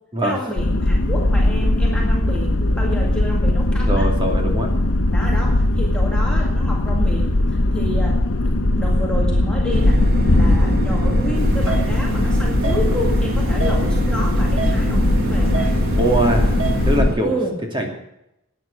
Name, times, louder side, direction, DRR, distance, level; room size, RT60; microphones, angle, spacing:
voice 1, 0.2-4.1 5.1-8.2 8.8-10.0 10.3-15.7 17.2-17.6, left 1 dB, 5° left, -2 dB, 2.0 m, -29 dB
sound 1, 0.6-17.1, left 1 dB, 60° left, 1.0 m, -19 dB
voice 2, 3.9-4.7 15.9-16.6 16.9-17.4 17.7-17.9, right 1 dB, 20° right, 2 dB, 2.5 m, -21 dB
sound 2, 9.7-17.1, right 2 dB, 45° right, 1.0 m, -27 dB
sound 3, 11.3-17.0, right 6 dB, 65° right, 2.5 m, -33 dB
12.0 x 9.5 x 8.9 m, 0.84 s
head